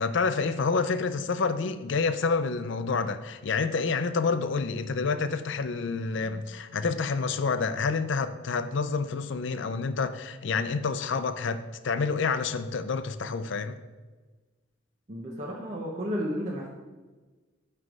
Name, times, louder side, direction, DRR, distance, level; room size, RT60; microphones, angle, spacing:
voice 1, 0.0-13.8, left 4 dB, 65° left, 11 dB, 0.5 m, -28 dB
voice 2, 15.1-16.7, equal, 35° right, -2 dB, 0.9 m, -32 dB
9.2 x 3.3 x 6.1 m, 1.3 s
head